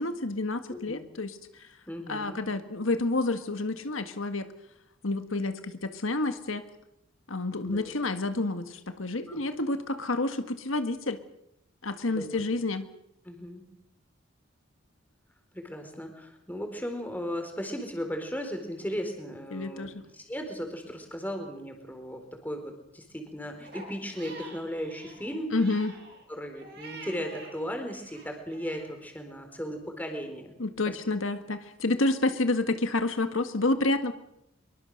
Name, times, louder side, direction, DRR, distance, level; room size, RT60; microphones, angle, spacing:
voice 1, 0.0-1.7 2.1-4.5 5.0-6.6 7.3-11.2 11.8-12.9 19.5-19.9 25.5-25.9 30.6-34.1, left 2 dB, 80° left, 8 dB, 1.7 m, -29 dB
voice 2, 0.7-1.0 1.9-2.4 7.6-8.0 9.3-9.4 12.1-12.4 13.2-13.6 15.5-25.6 26.3-30.5 30.9-31.0, equal, 10° left, 5 dB, 4.1 m, -36 dB
Crying sobbing, 23.6-27.6 27.9-28.9, right 2 dB, 55° right, 7.8 m, -47 dB
24.5 x 23.5 x 6.6 m, 0.78 s
head